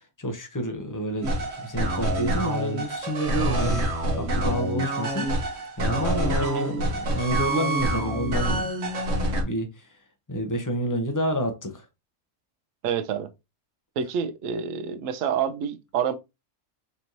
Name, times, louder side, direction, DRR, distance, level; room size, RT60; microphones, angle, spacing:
voice 1, 0.0-5.3 5.8-8.7 9.4-9.9 10.3-11.8, equal, 20° left, 0.5 m, -29 dB
sound 1, 1.2-9.4, right 1 dB, 60° right, 1.1 m, -26 dB
voice 2, 12.8-13.3 14.0-16.1, right 7 dB, 80° right, 1.0 m, -28 dB
4.3 x 3.0 x 2.6 m
omnidirectional pair, 1.4 m